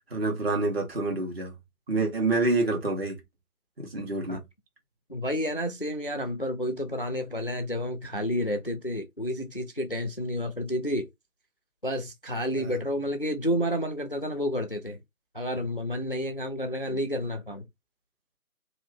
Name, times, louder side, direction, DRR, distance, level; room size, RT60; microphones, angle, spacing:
voice 1, 0.1-1.5 1.9-3.2 3.8-4.4 12.6-12.8, right 2 dB, 40° right, 1.4 m, -27 dB
voice 2, 5.1-11.1 11.8-15.0 15.3-17.6, equal, 40° left, 0.4 m, -30 dB
2.9 x 2.5 x 3.4 m
figure-of-eight pair, 155°, 44 cm